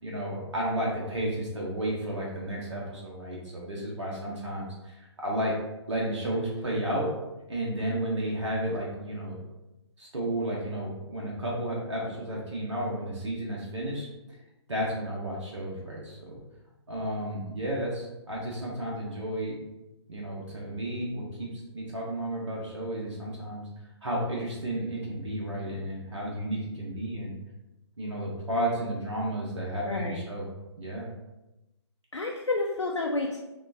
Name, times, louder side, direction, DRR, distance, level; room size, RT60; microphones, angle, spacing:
voice 1, 0.0-5.5 5.9-7.1 7.5-9.4 10.0-14.1 14.7-16.4 16.9-19.6 20.1-23.7 24.0-27.3 28.0-30.4 30.8-31.1, right 1 dB, 80° right, -4 dB, 1.1 m, -32 dB
voice 2, 29.9-30.3 32.1-33.4, left 2 dB, 90° left, 0 dB, 0.6 m, -30 dB
4.2 x 3.2 x 2.8 m, 0.99 s
figure-of-eight pair, 135°, 15 cm